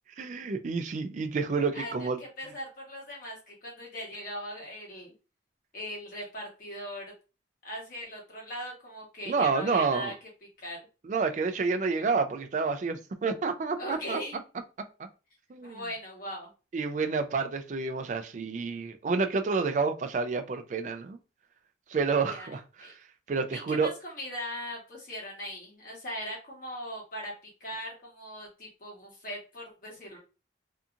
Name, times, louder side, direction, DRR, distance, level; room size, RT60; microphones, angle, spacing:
voice 1, 0.2-2.2 9.3-10.1 11.0-14.2 15.0-15.1 15.5-15.8 16.7-21.2 21.9-22.9 23.3-23.9, right 4 dB, 40° right, 0.3 m, -29 dB
voice 2, 1.7-5.1 5.7-7.1 7.6-10.1 10.6-10.8 13.8-14.4 15.6-16.5 22.3-22.5 22.8-22.9 23.5-30.2, equal, 50° left, 1.2 m, -39 dB
2.7 x 2.4 x 2.4 m
head